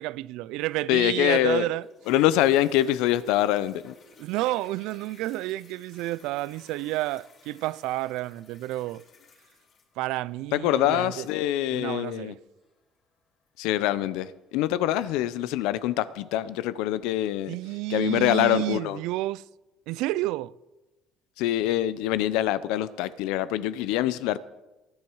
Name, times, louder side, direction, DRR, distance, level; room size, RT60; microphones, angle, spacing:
voice 1, 0.0-1.9 4.2-9.0 10.0-11.3 11.7-12.4 17.5-19.4 19.9-20.5, right 17 dB, 80° right, 0.4 m, -30 dB
voice 2, 0.9-1.7 2.1-3.9 10.5-12.3 13.6-17.5 17.9-19.0 21.4-24.4, left 13 dB, 85° left, 0.7 m, -25 dB
Toilet flush, 1.3-14.3 14.9-15.0, left 4 dB, 45° left, 6.7 m, -57 dB
20.5 x 10.5 x 4.7 m
cardioid pair, 130°, 0 cm